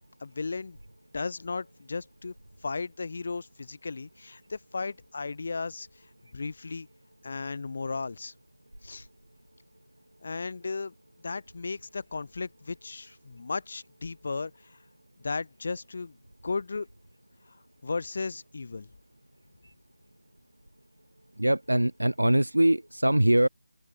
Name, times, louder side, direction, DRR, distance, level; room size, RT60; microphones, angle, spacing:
voice 1, 0.2-0.8 1.1-2.3 2.6-6.9 7.2-8.3 8.8-9.1 10.2-10.9 11.2-14.8 15.2-16.2 16.4-16.9 17.4-18.9, left 4 dB, 45° left, 5.0 m, -35 dB
voice 2, 21.4-23.5, right 1 dB, 80° right, 1.0 m, -22 dB
figure-of-eight pair, 155°, 0 cm